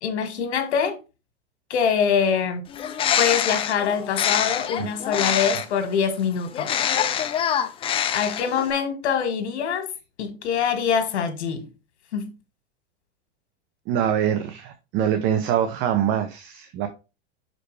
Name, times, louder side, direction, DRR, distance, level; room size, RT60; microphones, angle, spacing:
voice 1, 0.0-1.0 1.7-2.7 3.2-6.7 8.1-9.9 10.2-11.7 12.1-12.3, left 7 dB, 90° left, 1.9 m, -24 dB
Bird, 2.7-5.8 6.5-8.7, left 9 dB, 15° left, 0.5 m, -25 dB
voice 2, 13.9-16.9, right 9 dB, 35° right, 0.8 m, -24 dB
5.8 x 5.2 x 3.2 m
supercardioid pair, 145°, 33 cm